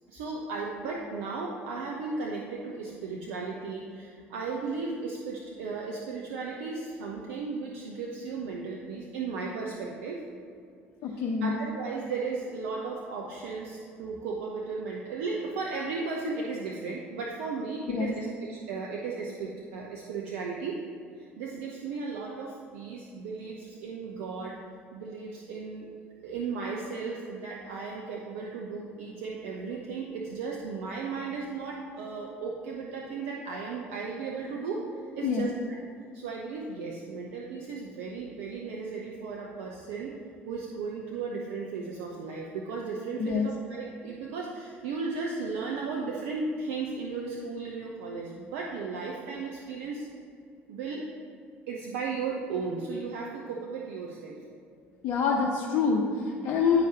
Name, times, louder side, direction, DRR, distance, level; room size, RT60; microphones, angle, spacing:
voice 1, 0.1-10.3 11.0-20.8 21.2-24.6 24.9-25.9 26.2-34.9 35.1-35.8 36.1-40.2 40.5-50.1 50.7-51.1 51.7-54.4, right 4 dB, 70° right, -1 dB, 0.7 m, -35 dB
voice 2, 11.0-11.5 17.9-18.1 35.2-35.4 43.2-43.5 55.0-56.8, left 5 dB, 55° left, -1 dB, 0.7 m, -26 dB
10.5 x 4.9 x 2.8 m, 2.3 s
hypercardioid pair, 60°, 6 cm